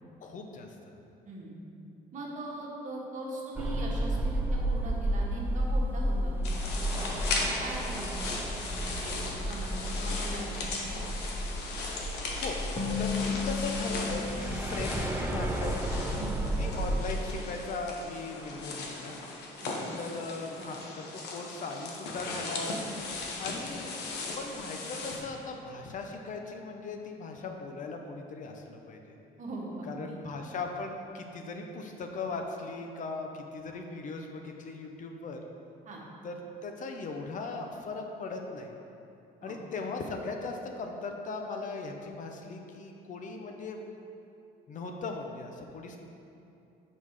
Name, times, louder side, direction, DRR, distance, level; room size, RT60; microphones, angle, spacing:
voice 1, 0.2-0.7 12.1-12.6 13.0-15.9 16.6-19.2 20.0-22.8 23.4-24.0 24.3-29.2 29.9-35.4 36.2-38.7 39.4-43.8 44.7-46.0, left 3 dB, 50° left, 3 dB, 0.8 m, -38 dB
voice 2, 1.2-1.6 2.1-8.3 8.7-9.2 9.5-11.0 16.1-16.3 19.6-20.0 20.6-20.8 29.4-30.2 35.8-36.0 39.4-39.6, right 2 dB, 50° right, -3 dB, 1.6 m, -41 dB
sound 1, 3.6-17.0, right 1 dB, 10° right, 0.5 m, -32 dB
sound 2, 6.4-25.2, left 3 dB, 80° left, 1.1 m, -38 dB
sound 3, 12.8-16.2, left 5 dB, 25° left, 1.1 m, -35 dB
6.5 x 5.5 x 4.9 m, 2.7 s
cardioid pair, 110°, 17 cm